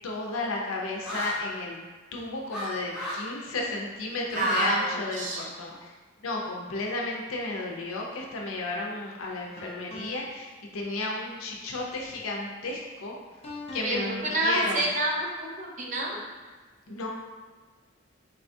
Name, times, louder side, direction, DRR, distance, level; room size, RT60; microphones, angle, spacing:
voice 1, 0.0-1.8 2.1-6.0 6.2-13.2 13.7-14.9 16.9-17.1, left 2 dB, 85° left, -1 dB, 0.5 m, -33 dB
sound 1, 1.0-1.4 2.5-2.7 2.9-3.2 4.2-4.7 5.0-5.7, left 1 dB, ahead, 1.0 m, -34 dB
voice 2, 4.4-5.5 13.8-16.2, right 2 dB, 35° right, -2 dB, 0.5 m, -28 dB
sound 2, 9.6-10.4 13.4-14.2, left 1 dB, 30° left, 0.5 m, -41 dB
4.0 x 2.3 x 2.6 m, 1.4 s
head